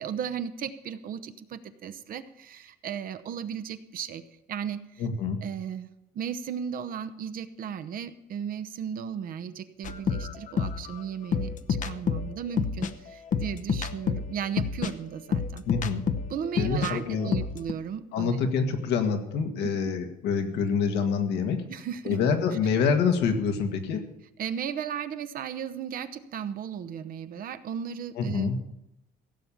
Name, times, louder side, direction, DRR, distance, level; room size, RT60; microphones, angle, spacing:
voice 1, 0.0-4.2 4.5-5.0 5.4-11.5 11.8-15.6 16.3-18.4 19.6-19.9 21.7-22.2 24.4-28.5, right 8 dB, 55° right, 11 dB, 0.9 m, -35 dB
voice 2, 5.0-5.4 15.7-16.0 16.6-17.3 18.1-21.6 22.0-24.0 28.2-28.6, left 5 dB, 80° left, 6 dB, 1.8 m, -26 dB
sound 1, 9.8-16.9 17.2-17.7, left 6 dB, 50° left, 0.9 m, -29 dB
16.0 x 7.0 x 7.3 m, 0.87 s
cardioid pair, 110°, 17 cm